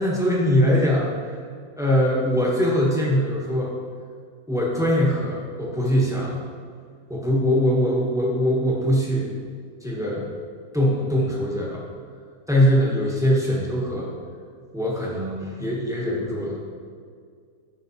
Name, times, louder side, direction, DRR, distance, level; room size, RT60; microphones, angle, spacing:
voice 1, 0.0-1.3 1.8-3.7 4.5-6.4 7.1-9.3 9.8-10.2 10.7-11.8 12.5-14.1 14.7-16.6, equal, ahead, -5 dB, 1.1 m, -22 dB
10.5 x 5.7 x 2.8 m, 2.1 s
omnidirectional pair, 1.7 m